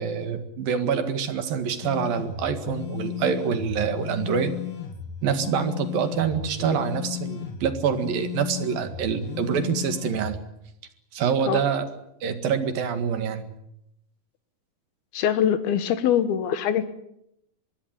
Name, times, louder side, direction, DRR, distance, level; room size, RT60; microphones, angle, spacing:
voice 1, 0.0-4.5 5.2-10.4 11.1-11.9 12.2-13.5, right 7 dB, 65° right, 9 dB, 3.6 m, -26 dB
sound 1, 1.8-10.4, left 11 dB, 55° left, 3.1 m, -35 dB
voice 2, 15.1-16.8, left 9 dB, 75° left, 12 dB, 3.3 m, -23 dB
25.0 x 21.5 x 8.9 m, 0.78 s
omnidirectional pair, 4.5 m